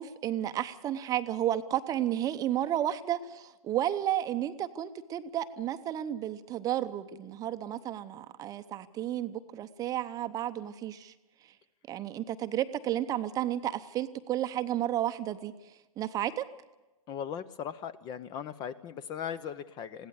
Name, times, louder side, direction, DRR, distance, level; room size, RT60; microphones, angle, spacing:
voice 1, 0.0-11.1 11.9-15.5 16.0-16.4, right 12 dB, 20° right, 11 dB, 0.8 m, -32 dB
voice 2, 17.1-20.1, left 8 dB, 25° left, 17 dB, 0.6 m, -38 dB
21.0 x 16.5 x 8.2 m, 1.1 s
hypercardioid pair, 130°, 18 cm